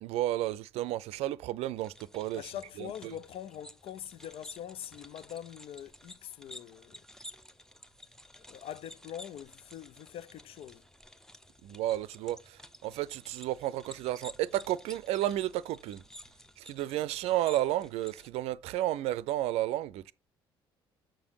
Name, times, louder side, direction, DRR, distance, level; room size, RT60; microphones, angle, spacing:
voice 1, 0.0-2.4 2.8-3.1 11.6-16.0 16.6-20.1, right 14 dB, 55° right, 0.5 m, -32 dB
sound 1, 1.8-18.3, left 1 dB, 5° left, 0.8 m, -53 dB
voice 2, 2.3-7.0 8.5-10.9, left 11 dB, 50° left, 0.5 m, -43 dB
7.3 x 6.9 x 2.9 m
figure-of-eight pair, 50°, 12 cm